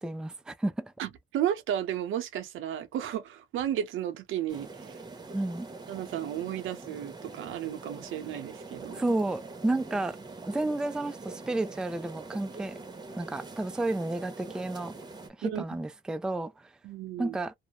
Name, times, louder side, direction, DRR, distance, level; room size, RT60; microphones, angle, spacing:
voice 1, 0.0-0.9 5.3-5.7 8.9-10.2 10.5-12.8 13.1-14.9 15.4-16.7 17.2-17.5, right 2 dB, 5° right, 0.3 m, -31 dB
voice 2, 1.0-5.0 5.9-9.0 15.4-15.6 16.8-17.4, right 10 dB, 80° right, 0.7 m, -33 dB
sound 1, 4.5-15.3, right 3 dB, 20° right, 0.8 m, -44 dB
2.4 x 2.0 x 2.9 m
cardioid pair, 90°, 20 cm